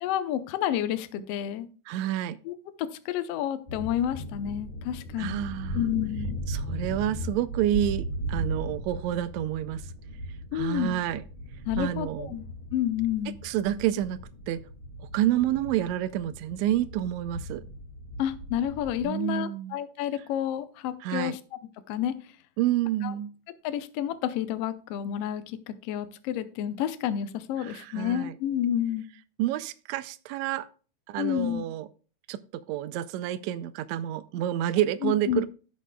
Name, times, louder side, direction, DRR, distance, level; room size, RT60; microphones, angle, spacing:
voice 1, 0.0-1.7 2.4-5.4 5.7-6.4 10.5-11.0 11.7-12.5 12.7-13.4 18.2-21.4 21.9-22.2 23.0-23.1 23.6-29.1 31.2-31.6 35.0-35.4, left 11 dB, 90° left, 1.3 m, -30 dB
voice 2, 1.9-2.4 5.2-5.9 6.5-9.8 10.5-11.2 11.8-12.3 13.4-14.2 14.5-14.6 15.1-17.6 19.0-19.8 21.0-21.4 22.6-23.3 27.7-28.3 29.4-30.7 31.1-31.9 32.3-32.4 32.7-35.5, right 12 dB, 80° right, 1.6 m, -28 dB
sound 1, 3.7-19.0, right 1 dB, 20° left, 1.3 m, -37 dB
16.0 x 6.3 x 2.2 m
omnidirectional pair, 3.7 m